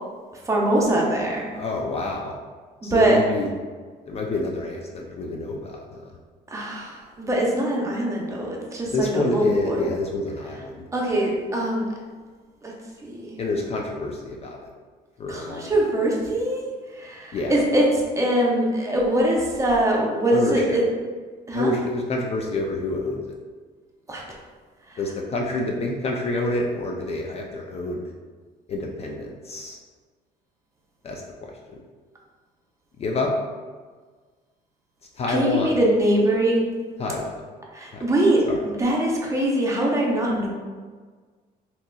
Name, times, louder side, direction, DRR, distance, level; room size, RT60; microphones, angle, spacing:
voice 1, 0.4-1.5 2.8-3.2 6.5-9.8 10.9-11.9 12.6-12.7 13.0-13.4 15.3-20.8 21.5-21.7 24.1-24.2 24.9-25.0 35.3-36.6 37.7-40.5, right 1 dB, 20° right, -3 dB, 0.7 m, -23 dB
voice 2, 1.5-2.3 2.8-3.5 4.1-5.8 8.9-10.9 13.4-14.6 15.2-15.7 17.3-17.5 20.3-20.8 21.5-23.2 25.0-28.1 28.7-29.8 31.0-31.8 33.0-33.3 35.2-35.7 37.0-37.3 37.9-38.0 38.5-38.6, left 2 dB, 40° left, 1 dB, 0.4 m, -27 dB
3.8 x 2.8 x 2.3 m, 1.5 s
cardioid pair, 110°, 17 cm